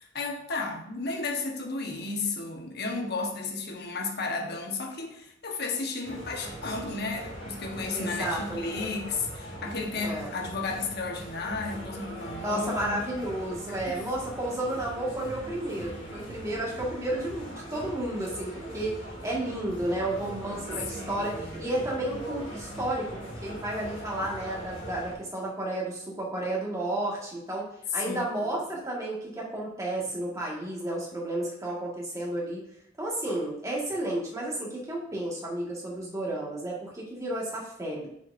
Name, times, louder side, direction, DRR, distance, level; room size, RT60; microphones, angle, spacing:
voice 1, 0.0-12.9 13.9-14.0 20.9-21.7 27.9-28.6, left 3 dB, 55° left, 2 dB, 1.2 m, -33 dB
sound 1, 6.0-25.1, right 1 dB, 85° left, 3.0 m, -41 dB
voice 2, 7.9-8.9 10.0-10.3 12.4-32.6 33.0-38.1, right 1 dB, 15° right, -4 dB, 1.8 m, -32 dB
7.5 x 7.4 x 2.6 m, 0.74 s
head